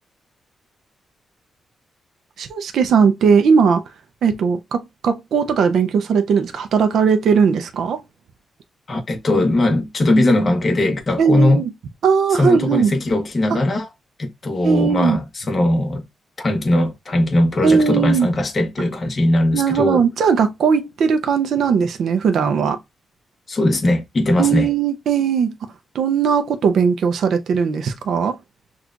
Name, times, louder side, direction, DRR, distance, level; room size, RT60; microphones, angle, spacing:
voice 1, 2.4-3.8 4.2-8.0 11.2-11.7 12.0-12.9 13.5-13.6 14.6-15.2 17.6-18.3 19.5-22.8 24.4-25.5 25.9-28.4, right 6 dB, 65° right, 0.5 m, -18 dB
voice 2, 8.9-11.6 12.4-13.9 14.2-16.0 16.4-20.0 23.5-24.7, left 1 dB, 30° left, 0.9 m, -19 dB
6.0 x 2.3 x 2.4 m
wide cardioid pair, 170°, 0 cm